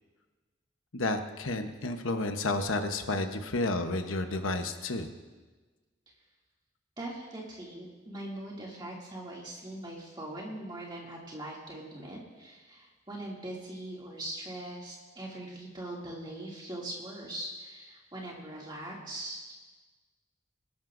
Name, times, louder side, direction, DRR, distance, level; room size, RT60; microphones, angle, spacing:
voice 1, 0.9-5.1, left 2 dB, 90° left, 6 dB, 1.1 m, -31 dB
voice 2, 7.0-19.4, right 1 dB, 20° right, -3 dB, 2.5 m, -41 dB
23.0 x 12.0 x 2.6 m, 1.3 s
head